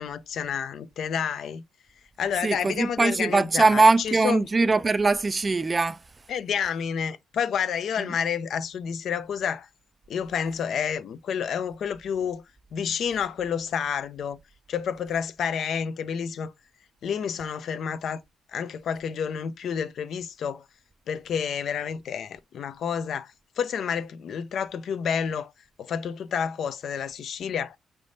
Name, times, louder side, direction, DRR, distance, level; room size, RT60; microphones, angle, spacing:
voice 1, 0.0-1.6 2.2-4.4 6.3-9.7 10.1-12.4 12.7-14.4 14.7-16.5 17.0-18.2 18.5-20.6 21.1-25.5 25.8-27.8, left 7 dB, 65° left, 0.5 m, -29 dB
voice 2, 2.4-6.0 8.0-8.1, right 3 dB, 25° right, 0.3 m, -21 dB
5.1 x 3.4 x 2.6 m
cardioid pair, 90°, 0 cm